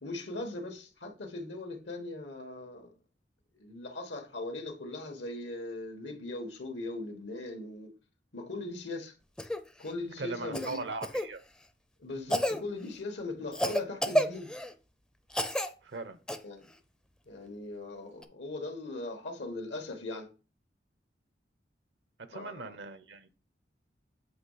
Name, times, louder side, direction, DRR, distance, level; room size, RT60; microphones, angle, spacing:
voice 1, 0.0-2.9 3.5-7.9 8.3-9.1 9.8-10.8 12.0-14.5 16.4-16.7 17.3-20.3 22.3-22.7, left 2 dB, 85° left, 1.5 m, -39 dB
Cough, 9.4-9.6 10.5-11.3 12.3-12.6 13.5-14.7 15.3-15.7 16.3-16.4 18.2-18.3, equal, 5° left, 0.5 m, -30 dB
voice 2, 10.2-11.4 15.8-16.2 22.3-23.3, right 3 dB, 70° right, 0.7 m, -39 dB
7.9 x 3.2 x 5.5 m
head